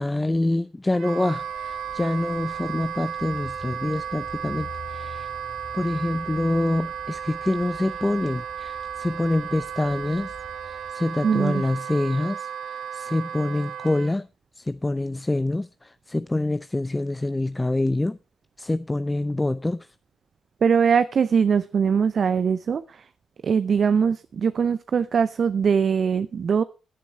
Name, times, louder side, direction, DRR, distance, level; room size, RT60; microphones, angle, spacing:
voice 1, 0.0-5.3 5.7-10.3 10.6-14.3 14.6-18.2 18.6-19.9, left 2 dB, 20° left, 0.5 m, -26 dB
Wind instrument woodwind instrument, 0.9-14.1, right 8 dB, 80° right, 1.0 m, -34 dB
sound 1, 1.3-10.9, left 4 dB, 50° left, 3.7 m, -46 dB
voice 2, 11.2-11.6 20.6-22.8 23.4-26.6, right 6 dB, 60° right, 0.5 m, -21 dB
15.5 x 7.0 x 4.4 m
hypercardioid pair, 45°, 0 cm